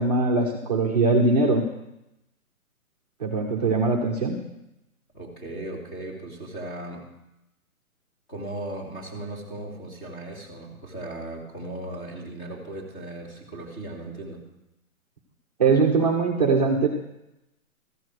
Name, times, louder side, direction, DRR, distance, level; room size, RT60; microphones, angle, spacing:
voice 1, 0.0-1.6 3.2-4.4 15.6-16.9, right 3 dB, 30° right, -1 dB, 0.8 m, -21 dB
voice 2, 5.1-7.0 8.3-14.4, right 1 dB, 15° left, -3 dB, 1.9 m, -37 dB
14.0 x 7.1 x 6.2 m, 0.90 s
hypercardioid pair, 175°, 43 cm